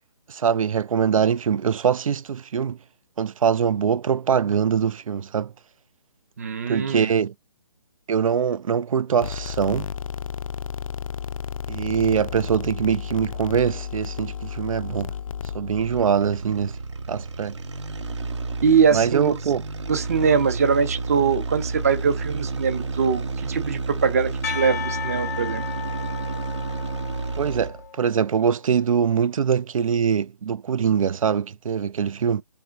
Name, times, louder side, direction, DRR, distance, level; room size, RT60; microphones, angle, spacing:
voice 1, 0.3-2.8 3.2-5.5 6.7-7.3 8.1-9.9 11.7-15.1 15.5-16.8 17.1-17.6 18.9-19.6 27.4-32.4, right 7 dB, 85° right, 0.4 m, -23 dB
voice 2, 6.4-7.1 18.6-19.4 19.9-25.6, right 6 dB, 30° right, 0.7 m, -22 dB
sound 1, 9.2-16.0, left 7 dB, 85° left, 0.4 m, -33 dB
sound 2, 15.8-27.9, right 3 dB, 60° right, 0.8 m, -31 dB
Percussion, 24.4-28.3, left 8 dB, 30° left, 0.5 m, -34 dB
4.2 x 3.4 x 2.5 m
hypercardioid pair, 170°, 17 cm